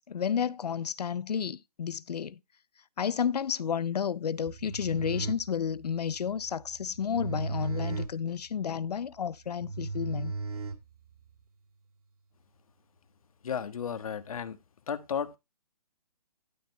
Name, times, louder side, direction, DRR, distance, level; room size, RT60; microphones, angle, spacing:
voice 1, 0.1-2.4 3.0-10.3, left 7 dB, 90° left, 0.6 m, -31 dB
sound 1, 4.4-11.3, right 3 dB, 65° right, 2.2 m, -37 dB
voice 2, 13.4-14.6 14.9-15.3, left 7 dB, 60° left, 1.5 m, -33 dB
12.0 x 4.1 x 5.4 m
hypercardioid pair, 160°, 20 cm